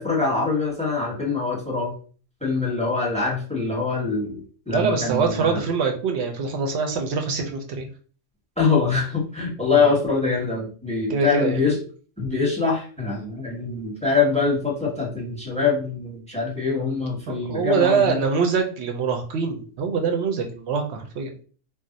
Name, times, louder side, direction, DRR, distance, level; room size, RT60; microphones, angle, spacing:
voice 1, 0.0-1.9 2.4-5.6 8.6-11.8 12.2-18.2, left 4 dB, 5° left, -2 dB, 0.7 m, -24 dB
voice 2, 4.7-7.9 9.7-9.9 11.1-11.6 17.3-21.3, right 5 dB, 65° right, 3 dB, 0.7 m, -24 dB
2.5 x 2.0 x 3.8 m, 0.40 s
omnidirectional pair, 1.4 m